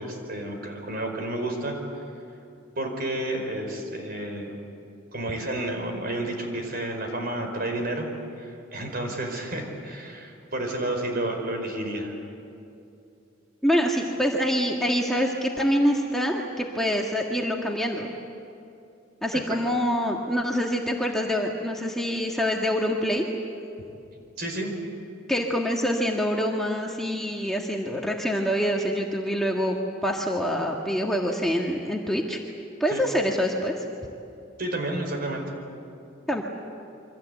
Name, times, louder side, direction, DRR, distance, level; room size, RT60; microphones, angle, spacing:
voice 1, 0.0-1.8 2.8-4.5 5.1-8.1 8.4-12.1 19.3-19.4 24.4-24.7 32.9-33.0 34.6-35.4, right 1 dB, 50° right, 3 dB, 4.9 m, -31 dB
voice 2, 13.6-18.1 19.2-23.2 25.3-29.8 30.0-32.4 32.8-33.8 36.3-36.4, equal, ahead, -1 dB, 1.6 m, -25 dB
28.5 x 24.5 x 8.2 m, 2.7 s
head